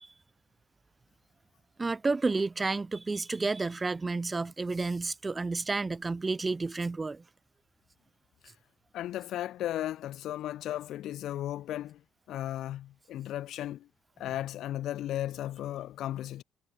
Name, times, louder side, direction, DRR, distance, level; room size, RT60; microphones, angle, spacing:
voice 1, 1.8-7.2, right 3 dB, 25° right, 1.2 m, -31 dB
voice 2, 8.9-12.0 12.3-13.9 14.2-16.4, left 13 dB, 80° left, 0.5 m, -35 dB
cardioid pair, 90°, 0 cm